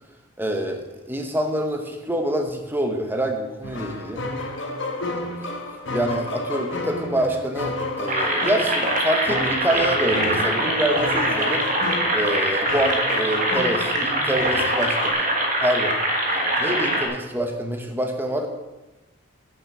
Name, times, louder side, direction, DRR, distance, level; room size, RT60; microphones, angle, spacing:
voice 1, 0.4-4.2 5.9-11.6 12.1-15.3 15.6-16.0 16.2-18.5, right 1 dB, 10° right, 4 dB, 0.9 m, -26 dB
sound 1, 3.6-15.1, left 2 dB, 60° left, 1.3 m, -31 dB
sound 2, 8.1-17.1, right 1 dB, 40° right, 1.5 m, -23 dB
8.7 x 7.2 x 5.9 m, 1.1 s
head